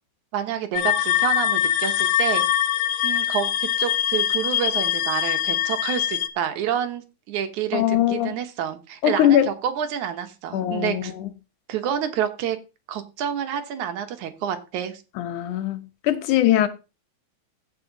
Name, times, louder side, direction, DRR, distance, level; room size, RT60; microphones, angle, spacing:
voice 1, 0.3-2.4 3.0-11.1 11.7-12.6 12.9-15.0, right 9 dB, 75° right, 2.6 m, -28 dB
sound 1, 0.7-6.3, left 11 dB, 75° left, 1.8 m, -23 dB
voice 2, 7.7-8.4 9.0-9.5 10.5-11.3 15.2-16.7, left 12 dB, 90° left, 2.5 m, -21 dB
15.5 x 5.6 x 4.0 m
omnidirectional pair, 3.4 m